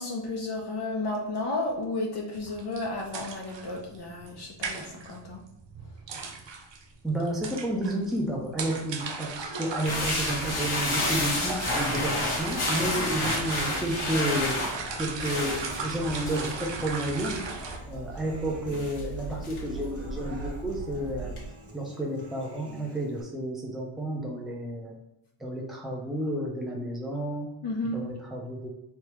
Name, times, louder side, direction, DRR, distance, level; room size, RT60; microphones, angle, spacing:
voice 1, 0.0-5.4 27.6-28.1, left 2 dB, 55° left, -1 dB, 0.7 m, -32 dB
sound 1, 2.3-17.8, right 4 dB, 65° right, 0.7 m, -37 dB
voice 2, 7.0-14.6 14.9-17.5 17.9-21.3 21.7-25.0 25.4-27.5 27.8-28.7, right 1 dB, ahead, -2 dB, 0.7 m, -31 dB
sound 2, 9.8-21.5, left 2 dB, 80° left, 1.3 m, -32 dB
Human voice / Acoustic guitar, 15.2-23.2, right 3 dB, 30° right, 1.0 m, -47 dB
3.4 x 3.4 x 3.0 m, 0.88 s
wide cardioid pair, 90°, 48 cm